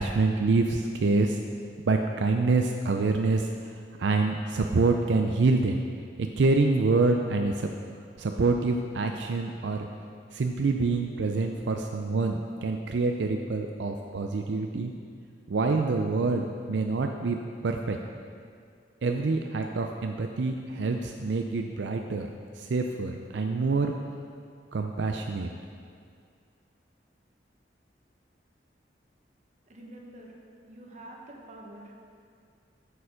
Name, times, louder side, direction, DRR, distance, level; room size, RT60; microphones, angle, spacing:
voice 1, 0.0-1.4 1.9-3.5 4.0-5.8 6.2-7.7 8.2-9.9 10.3-14.9 15.5-18.0 19.0-22.3 22.6-23.9 24.7-25.5, right 3 dB, 80° right, 4 dB, 0.5 m, -26 dB
voice 2, 29.7-30.3 30.6-31.9, right 1 dB, 40° right, -1 dB, 1.4 m, -46 dB
8.6 x 6.9 x 5.0 m, 2.2 s
head